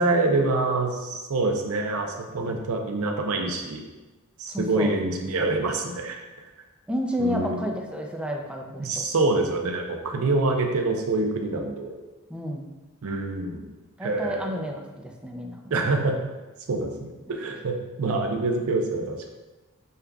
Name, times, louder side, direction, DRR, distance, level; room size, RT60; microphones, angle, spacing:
voice 1, 0.0-3.8 4.4-6.2 7.2-7.6 8.8-11.9 13.0-13.7 14.0-14.7 15.7-16.3 16.7-19.3, right 2 dB, 70° right, 3 dB, 0.5 m, -26 dB
voice 2, 2.3-2.6 4.5-4.9 6.9-9.0 10.1-10.5 12.3-12.7 14.0-15.7, equal, 5° right, 1 dB, 0.4 m, -31 dB
6.5 x 2.3 x 2.3 m, 1.1 s
head